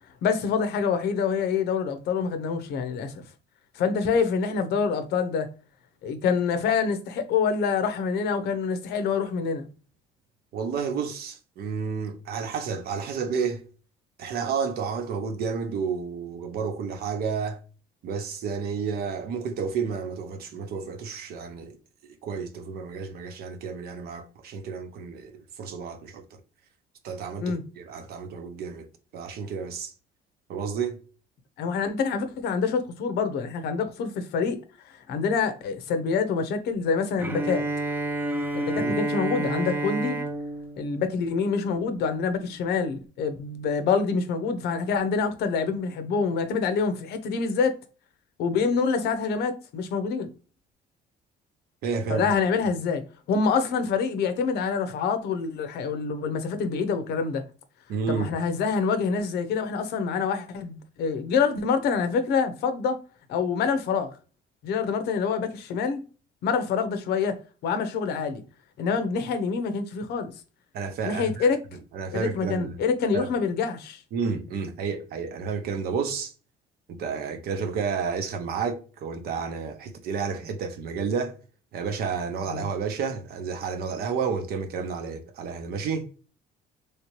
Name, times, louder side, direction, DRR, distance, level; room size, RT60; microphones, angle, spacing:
voice 1, 0.2-3.2 3.7-5.5 6.0-9.7 27.4-27.6 31.6-34.6 34.9-37.7 38.5-40.2 40.8-47.8 48.4-50.3 52.1-57.4 58.1-63.0 63.3-64.1 64.6-66.0 66.4-67.4 67.6-68.4 68.8-70.3 71.0-71.6 72.1-74.0 82.5-82.6, left 5 dB, 75° left, 0.7 m, -26 dB
voice 2, 10.5-13.6 14.2-17.6 18.0-21.8 22.0-26.2 27.0-28.9 29.1-29.9 30.5-31.0 38.8-38.9 51.8-52.3 57.9-58.3 70.7-71.5 71.9-72.7 73.1-73.3 74.1-76.3 76.9-81.4 81.7-86.1, right 5 dB, 65° right, 0.8 m, -31 dB
Bowed string instrument, 37.2-42.1, right 2 dB, 10° right, 0.5 m, -30 dB
3.2 x 2.9 x 3.0 m
cardioid pair, 110°, 17 cm